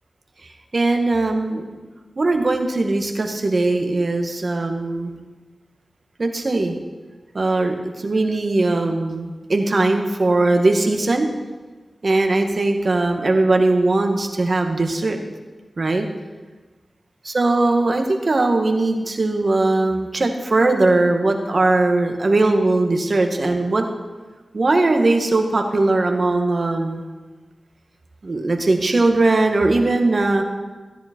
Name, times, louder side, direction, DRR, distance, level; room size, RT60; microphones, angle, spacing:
voice 1, 0.7-1.7 2.2-5.1 6.2-6.8 7.3-7.8 8.0-11.3 12.0-15.2 15.8-16.1 17.3-23.9 24.5-27.0 28.2-30.4, right 2 dB, 60° right, 4 dB, 1.9 m, -19 dB
16.0 x 10.0 x 4.6 m, 1.3 s
cardioid pair, 40°, 0 cm